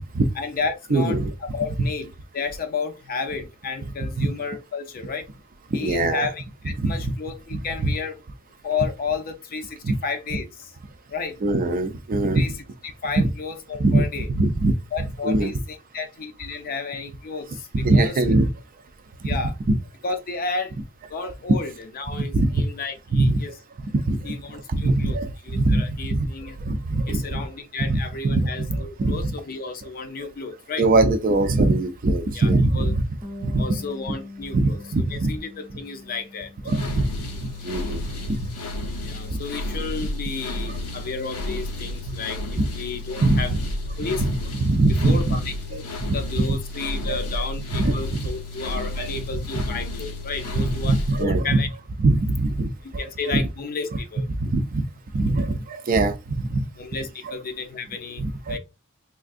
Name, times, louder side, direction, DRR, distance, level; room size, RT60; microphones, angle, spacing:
voice 1, 0.4-5.2 5.7-8.2 8.6-10.7 11.1-11.4 12.3-12.5 12.8-14.3 14.9-18.2 19.2-19.5 20.0-20.7 21.1-23.5 24.2-25.2 25.4-26.6 27.1-30.8 32.3-32.9 33.6-34.8 35.1-36.5 39.0-43.5 44.0-44.3 45.0-51.7 52.8-54.2 56.7-58.6, left 4 dB, 40° left, 0.5 m, -32 dB
voice 2, 0.9-1.3 4.2-4.3 5.7-6.3 6.8-7.1 7.5-7.9 9.8-9.9 11.4-12.4 13.2-13.3 13.8-14.0 14.3-14.7 15.2-15.5 17.8-18.5 19.3-19.4 19.7-19.8 22.1-22.6 23.1-23.3 24.0-24.4 24.7-26.3 26.6-27.4 27.9-29.3 30.8-33.0 33.4-33.6 34.5-35.3 36.7-37.1 37.4-38.5 39.3-39.4 42.6-42.7 43.2-43.4 44.2-45.4 46.1-46.2 47.0-47.4 47.7-47.9 49.0-49.1 50.6-51.6 52.0-53.4 54.4-54.8 55.1-56.6 57.2-57.3 58.2-58.6, right 2 dB, 40° right, 0.4 m, -22 dB
Bass guitar, 33.2-39.5, left 2 dB, 15° right, 0.7 m, -43 dB
sound 1, 36.7-51.2, left 1 dB, 85° left, 0.7 m, -31 dB
3.4 x 2.5 x 2.5 m
head